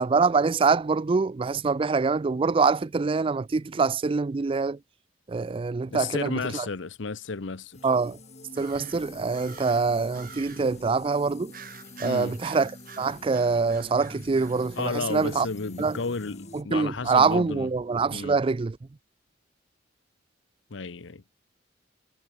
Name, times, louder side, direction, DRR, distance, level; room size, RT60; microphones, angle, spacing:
voice 1, 0.0-4.8 5.3-6.7 7.8-8.2 8.6-11.5 12.0-12.7 13.0-15.5 15.8-16.0 16.5-18.8, right 4 dB, 30° right, 0.4 m, -25 dB
voice 2, 5.9-7.8 12.0-12.3 14.8-17.7 18.1-18.3 20.7-21.2, left 4 dB, 75° left, 0.8 m, -32 dB
sound 1, 7.7-16.6, left 2 dB, 35° left, 5.0 m, -46 dB
sound 2, 8.5-10.8 11.5-15.5, right 8 dB, 50° right, 2.5 m, -48 dB
head